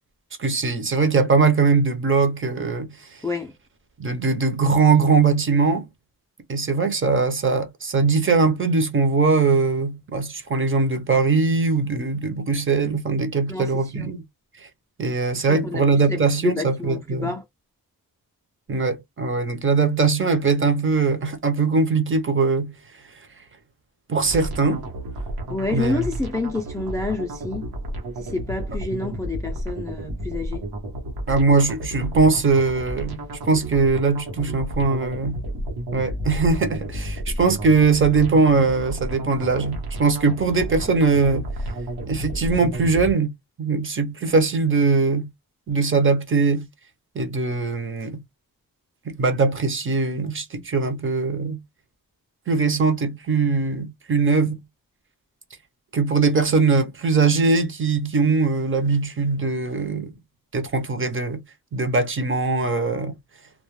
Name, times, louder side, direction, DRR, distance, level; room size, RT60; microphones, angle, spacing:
voice 1, 0.4-3.2 4.0-5.9 6.5-14.2 14.6-14.7 15.0-17.3 18.7-22.7 24.1-24.8 25.7-26.1 31.3-33.2 33.5-35.4 35.9-41.5 42.1-43.3 43.6-45.3 45.7-46.7 47.1-48.2 49.0-51.6 52.5-54.6 55.9-60.1 60.5-61.4 61.7-63.2, right 4 dB, 35° right, 0.6 m, -21 dB
voice 2, 15.6-17.4 25.5-27.7 28.2-30.6, left 3 dB, 10° left, 0.3 m, -28 dB
sound 1, 24.2-43.1, right 1 dB, 85° right, 0.9 m, -32 dB
2.2 x 2.1 x 3.0 m
wide cardioid pair, 165°, 36 cm